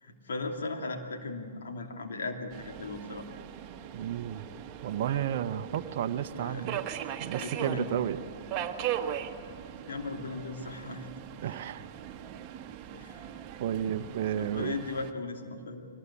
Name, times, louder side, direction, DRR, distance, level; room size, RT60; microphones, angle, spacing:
voice 1, 0.0-3.3 6.3-6.6 7.4-7.9 9.9-11.1 11.4-11.7 12.9-13.3 14.4-15.9, left 3 dB, 70° left, 3 dB, 2.6 m, -37 dB
Subway metro underground, 2.5-15.1, right 10 dB, 35° right, 1.4 m, -39 dB
voice 2, 3.9-4.5 4.8-6.8 7.2-8.2 11.4-11.8 13.6-14.8, right 10 dB, 50° right, 9 dB, 0.8 m, -32 dB
22.5 x 19.0 x 8.4 m, 2.4 s
hypercardioid pair, 120°, 0 cm